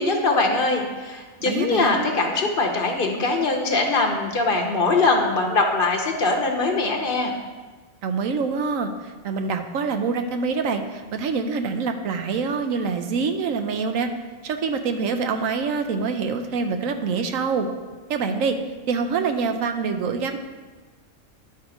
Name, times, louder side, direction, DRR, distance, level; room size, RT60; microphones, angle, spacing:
voice 1, 0.0-7.3, left 3 dB, 50° left, 2 dB, 0.9 m, -22 dB
voice 2, 1.5-2.1 8.0-14.1 14.4-17.7 18.1-18.6 18.9-20.4, right 5 dB, 85° right, 7 dB, 1.1 m, -25 dB
11.0 x 3.7 x 4.9 m, 1.4 s
omnidirectional pair, 1.4 m